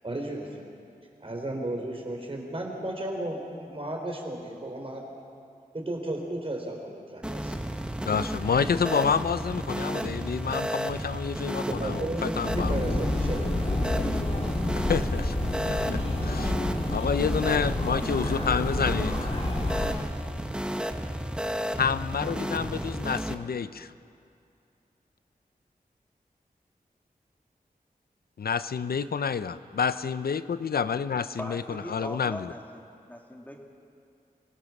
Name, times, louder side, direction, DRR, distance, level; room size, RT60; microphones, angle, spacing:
voice 1, 0.0-0.6 1.2-5.0 5.7-7.6 11.7-13.5, right 1 dB, 35° right, 1 dB, 4.2 m, -34 dB
sound 1, 7.2-23.3, equal, 5° right, 1.2 m, -33 dB
voice 2, 8.1-12.8 14.9-15.4 15.7-15.8 16.2-16.5 16.9-19.1 21.8-23.9 28.4-31.6 31.9-32.5, left 6 dB, 75° left, 14 dB, 0.6 m, -28 dB
sound 2, 12.5-19.9, left 1 dB, 40° left, 2.9 m, -29 dB
voice 3, 31.4-33.6, left 1 dB, 10° left, 0 dB, 2.7 m, -42 dB
27.0 x 17.5 x 6.1 m, 2.5 s
wide cardioid pair, 85°, 16 cm